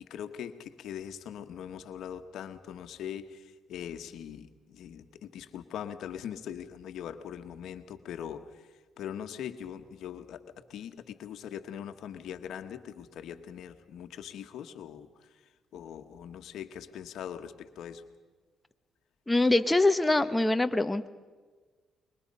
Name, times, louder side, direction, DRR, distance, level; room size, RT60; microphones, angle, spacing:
voice 1, 0.0-8.7 9.0-10.4 10.7-15.1 15.7-18.0, left 9 dB, 75° left, 8 dB, 1.3 m, -41 dB
voice 2, 19.3-21.1, left 2 dB, 10° left, 8 dB, 1.0 m, -24 dB
26.5 x 22.5 x 5.5 m, 1.4 s
cardioid pair, 90°, 0 cm